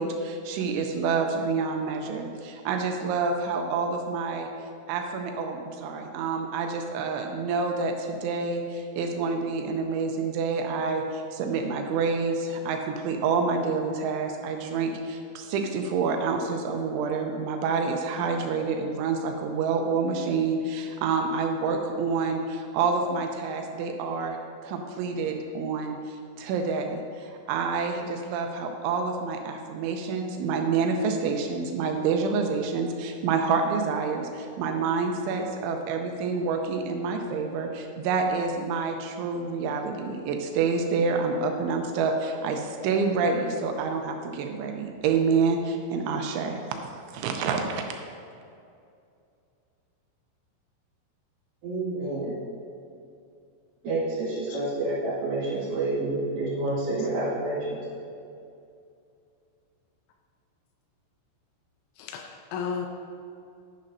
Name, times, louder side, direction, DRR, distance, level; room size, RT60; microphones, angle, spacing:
voice 1, 0.0-4.5 4.9-24.4 24.6-46.6 47.1-47.8, right 4 dB, 85° right, 4 dB, 2.9 m, -28 dB
voice 2, 51.6-52.4 53.8-57.8, right 2 dB, 55° right, -7 dB, 3.3 m, -28 dB
voice 3, 62.0-62.9, left 6 dB, 80° left, 3 dB, 2.8 m, -34 dB
10.5 x 10.5 x 2.6 m, 2.5 s
omnidirectional pair, 5.6 m